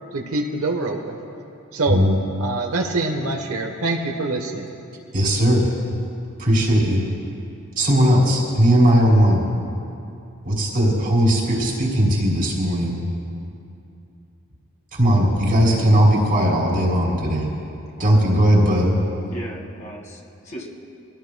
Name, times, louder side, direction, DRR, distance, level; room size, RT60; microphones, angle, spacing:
voice 1, 0.1-1.2 1.7-2.0 2.4-4.7, right 2 dB, 70° right, 3 dB, 1.1 m, -25 dB
voice 2, 1.9-2.2 5.1-5.6 5.9-6.0 6.4-7.0 7.8-9.4 10.4-13.0 14.9-17.5 18.0-19.0, equal, 40° right, -2 dB, 2.9 m, -18 dB
voice 3, 19.3-20.7, right 1 dB, 35° left, -2 dB, 2.1 m, -37 dB
25.0 x 16.5 x 2.3 m, 2.6 s
head